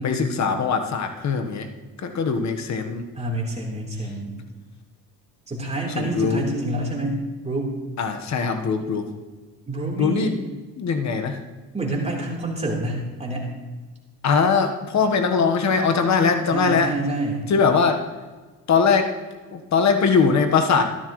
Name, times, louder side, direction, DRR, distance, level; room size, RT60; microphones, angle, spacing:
voice 1, 0.0-1.7 2.0-3.0 5.9-6.4 8.0-9.1 10.0-10.3 10.8-11.4 14.2-16.9 17.5-18.0 18.7-19.1 19.5-20.8, left 5 dB, 50° left, 6 dB, 1.3 m, -21 dB
voice 2, 3.2-4.4 5.5-7.7 9.7-10.4 11.7-13.5 16.5-17.5, right 1 dB, 20° right, -3 dB, 3.6 m, -27 dB
14.5 x 12.0 x 3.1 m, 1.3 s
cardioid pair, 100°, 36 cm